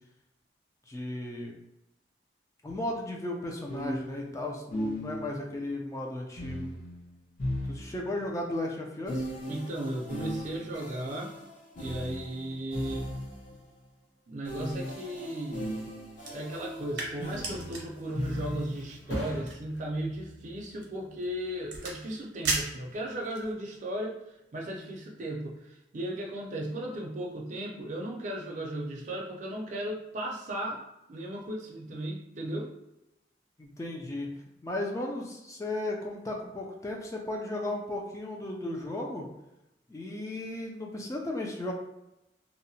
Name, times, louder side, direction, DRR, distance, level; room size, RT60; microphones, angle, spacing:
voice 1, 0.9-1.5 2.6-6.7 7.7-9.3 33.6-34.3 34.6-39.3 39.9-41.7, left 1 dB, 15° left, 0 dB, 0.3 m, -35 dB
sound 1, 2.7-2.8 3.7-5.5 6.4-8.3 9.1-13.6 14.4-19.0, equal, 45° left, 0.8 m, -37 dB
voice 2, 9.5-11.4 11.8-13.1 14.3-15.9 16.3-24.2 24.5-30.8 31.1-32.7, right 1 dB, 45° right, -1 dB, 0.4 m, -36 dB
sound 2, 16.2-23.5, right 3 dB, 80° right, 0.7 m, -39 dB
Thump thud, 17.7-25.0 25.4-25.8, equal, 85° left, 0.9 m, -45 dB
2.7 x 2.1 x 2.6 m, 0.90 s
head